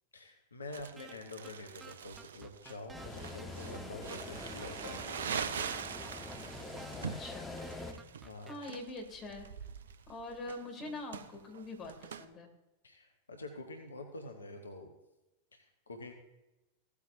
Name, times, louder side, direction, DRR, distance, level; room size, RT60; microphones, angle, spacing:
voice 1, 0.1-5.0 7.9-8.6 12.8-14.9 15.5-16.1, left 2 dB, 75° left, 4 dB, 1.0 m, -47 dB
Crumpling crinkling, 0.7-12.2, right 7 dB, 65° right, 0.5 m, -43 dB
sound 1, 1.0-1.1 1.4-1.5 1.8-3.1 3.4-3.5 3.7-5.0 5.3-5.4 5.7-6.9 7.2-7.3 7.6-8.5, right 5 dB, 15° right, 0.6 m, -52 dB
sound 2, 2.9-7.9, left 2 dB, 10° left, 1.1 m, -45 dB
voice 2, 7.0-7.5 8.5-9.5 10.1-12.5, left 2 dB, 30° left, 3 dB, 2.4 m, -44 dB
16.0 x 8.4 x 2.6 m, 0.99 s
figure-of-eight pair, 90°, 0 cm